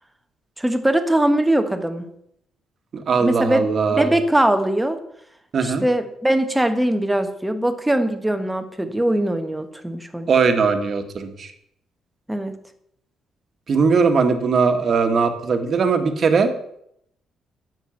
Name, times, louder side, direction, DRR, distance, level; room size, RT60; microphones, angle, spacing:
voice 1, 0.6-2.1 3.2-3.6 3.9-5.0 5.6-10.3 12.3-12.6, right 1 dB, 10° right, 8 dB, 1.4 m, -21 dB
voice 2, 2.9-4.1 5.5-5.8 10.3-11.5 13.7-16.5, right 5 dB, 50° right, 7 dB, 1.7 m, -19 dB
10.5 x 7.1 x 7.2 m, 0.74 s
cardioid pair, 90°, 0 cm